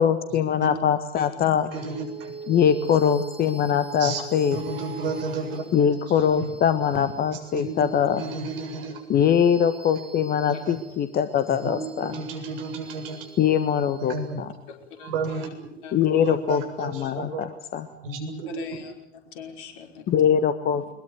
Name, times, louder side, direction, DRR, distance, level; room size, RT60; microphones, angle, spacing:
voice 1, 0.0-1.7 2.5-4.6 5.7-8.2 9.1-12.1 13.4-14.5 15.9-17.9 20.1-21.0, left 8 dB, 25° left, 11 dB, 1.5 m, -22 dB
sound 1, 1.7-16.5, right 2 dB, 15° right, 2.9 m, -43 dB
voice 2, 1.7-2.3 4.0-4.2 4.5-5.6 6.3-6.5 7.3-9.0 10.6-10.8 11.5-13.2 14.0-14.4 15.0-15.5 16.2-17.5 17.8-18.7, right 4 dB, 55° right, 5 dB, 7.5 m, -32 dB
voice 3, 14.7-15.5 15.8-16.4 18.5-20.1, left 6 dB, 50° left, 4 dB, 5.3 m, -42 dB
23.0 x 22.0 x 9.5 m, 0.79 s
figure-of-eight pair, 90°, 34 cm